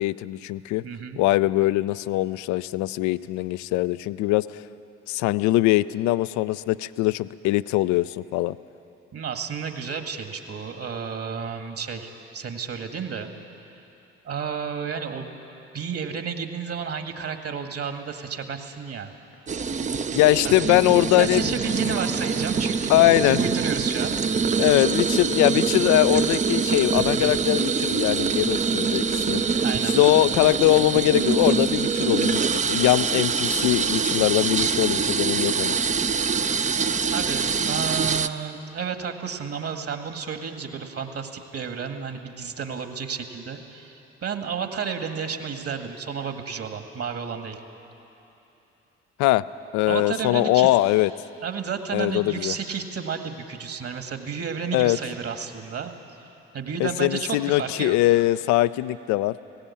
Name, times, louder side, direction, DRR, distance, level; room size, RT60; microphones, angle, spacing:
voice 1, 0.0-0.8 1.2-4.5 5.1-8.6 20.1-21.5 22.9-23.4 24.6-29.4 29.8-32.4 32.7-35.8 49.2-49.4 49.7-51.1 51.9-52.5 54.7-55.0 56.8-59.3, left 17 dB, 65° left, 17 dB, 0.5 m, -21 dB
voice 2, 0.8-1.2 9.1-13.3 14.2-15.3 15.7-19.1 20.4-20.5 21.2-24.2 25.8-25.9 29.6-29.9 37.1-44.0 44.2-47.6 49.9-50.7 51.4-55.9 56.5-58.0, right 6 dB, 50° right, 6 dB, 1.9 m, -32 dB
sound 1, 19.5-38.3, right 5 dB, 25° right, 0.6 m, -24 dB
17.5 x 17.0 x 8.6 m, 3.0 s
hypercardioid pair, 55°, 31 cm